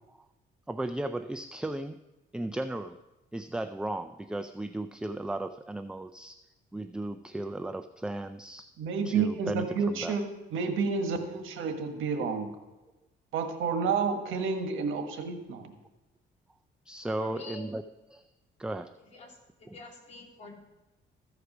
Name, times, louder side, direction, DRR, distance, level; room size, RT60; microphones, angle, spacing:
voice 1, 0.7-2.0 2.3-3.0 3.3-8.7 9.1-10.2 16.9-17.8 18.1-18.3 18.6-19.0 19.7-19.8, right 1 dB, 5° right, 10 dB, 0.3 m, -35 dB
voice 2, 8.8-12.5 13.3-15.7, right 5 dB, 85° right, 5 dB, 1.4 m, -30 dB
voice 3, 17.2-17.6 19.1-20.5, left 3 dB, 35° left, -4 dB, 3.3 m, -47 dB
14.5 x 4.8 x 6.0 m, 1.0 s
cardioid pair, 90°, 20 cm